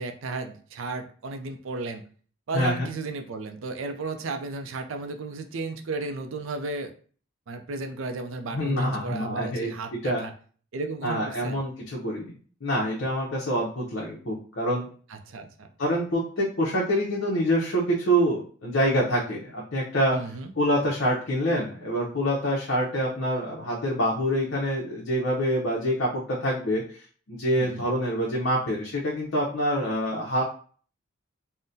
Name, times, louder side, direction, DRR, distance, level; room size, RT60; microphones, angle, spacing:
voice 1, 0.0-2.0 2.5-6.9 7.5-10.3 10.7-11.6 15.1-15.7 20.1-20.5 27.6-27.9, right 3 dB, 75° right, 6 dB, 0.4 m, -34 dB
voice 2, 2.5-2.9 8.5-9.7 10.0-10.2 11.0-12.3 12.6-14.9 15.8-20.2 20.6-27.0 27.3-30.4, equal, 60° left, -4 dB, 0.6 m, -26 dB
3.7 x 2.1 x 2.6 m, 0.43 s
head